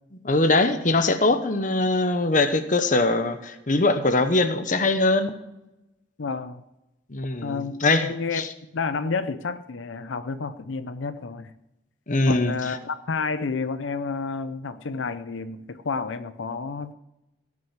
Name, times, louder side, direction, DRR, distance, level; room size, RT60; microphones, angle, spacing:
voice 1, 0.2-5.3 7.1-8.1 8.3-8.5 12.1-12.8, left 2 dB, 45° left, 9 dB, 1.0 m, -22 dB
voice 2, 6.2-6.6 7.4-7.7 8.0-8.5 8.7-11.5 12.3-16.9, left 4 dB, 90° left, 12 dB, 0.6 m, -30 dB
17.5 x 6.2 x 7.3 m, 0.92 s
head